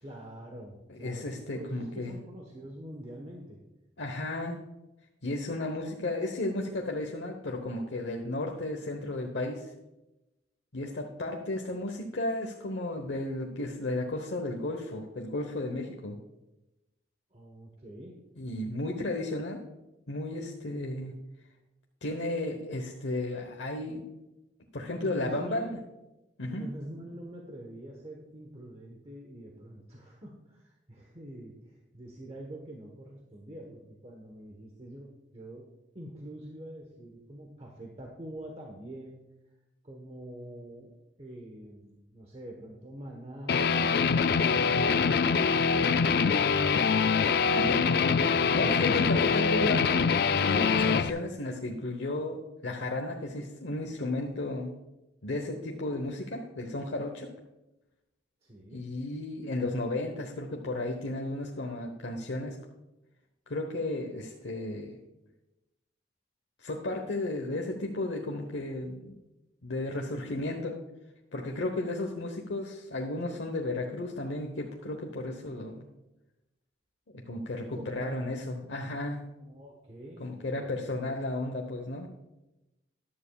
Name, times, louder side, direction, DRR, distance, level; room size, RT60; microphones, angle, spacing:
voice 1, 0.0-3.6 17.3-18.3 25.0-25.7 26.5-35.7 35.9-39.2 39.8-40.9 41.2-43.8 44.5-47.0 58.4-58.9 77.7-78.3 79.4-80.7, right 1 dB, 35° right, 0 dB, 1.1 m, -45 dB
voice 2, 0.9-2.1 4.0-4.6 5.2-9.7 10.7-16.2 18.4-19.6 20.1-21.1 22.0-24.0 24.7-25.8 26.4-26.6 47.5-48.1 48.5-50.0 50.4-54.7 55.2-57.3 58.7-62.6 63.5-65.0 66.6-69.1 69.6-70.8 71.3-75.8 77.3-79.2 80.2-82.1, left 2 dB, 85° left, 1 dB, 1.0 m, -34 dB
Guitar, 43.5-51.1, left 5 dB, 55° left, 0.4 m, -24 dB
14.0 x 11.0 x 2.3 m, 0.97 s
head